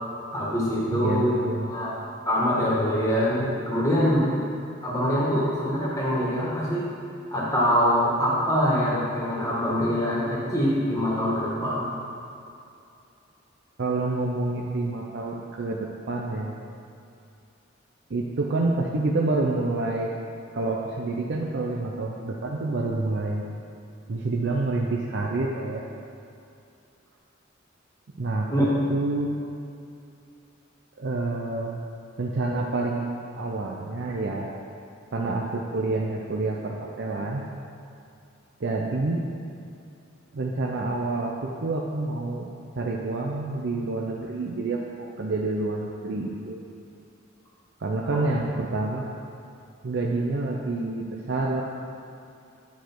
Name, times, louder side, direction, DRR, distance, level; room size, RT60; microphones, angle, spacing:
voice 1, 0.3-1.3 1.7-1.9 2.3-4.3 4.8-6.9 7.3-11.9 28.5-28.6 48.1-48.2, equal, 15° left, -7 dB, 1.7 m, -24 dB
voice 2, 0.9-1.7 13.8-16.5 18.1-20.1 20.5-23.4 24.1-25.8 28.2-29.4 31.0-31.8 32.2-34.6 35.1-37.4 38.6-39.2 40.3-42.5 42.8-46.6 47.8-49.1 49.8-51.6, right 2 dB, 60° right, -2 dB, 0.5 m, -28 dB
9.3 x 4.6 x 4.5 m, 2.6 s
head